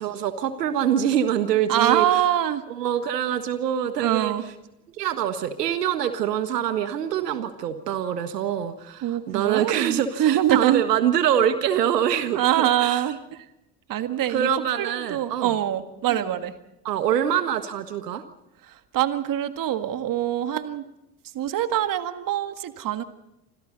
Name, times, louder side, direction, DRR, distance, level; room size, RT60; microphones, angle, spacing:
voice 1, 0.0-2.1 2.7-4.3 5.0-13.0 14.3-15.5 16.1-16.2 16.8-18.2, right 9 dB, 75° right, 10 dB, 1.7 m, -25 dB
voice 2, 1.7-2.6 4.0-4.4 9.0-10.8 12.3-13.5 13.9-16.5 18.6-20.9 21.3-23.0, right 12 dB, 40° right, 9 dB, 1.8 m, -24 dB
29.0 x 26.5 x 4.1 m, 0.88 s
figure-of-eight pair, 65°, 48 cm